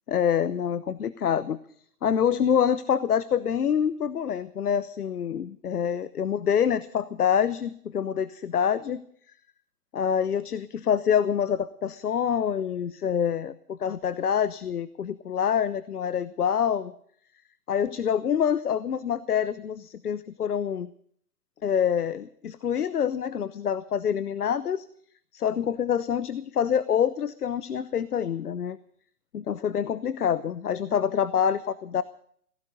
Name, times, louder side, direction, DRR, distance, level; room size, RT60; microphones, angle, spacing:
voice 1, 0.1-1.6 2.0-9.0 9.9-16.9 17.7-20.9 21.6-24.9 25.3-28.8 29.3-32.0, left 8 dB, 80° left, 16 dB, 1.0 m, -26 dB
17.0 x 16.5 x 5.3 m, 0.62 s
hypercardioid pair, 135°, 45 cm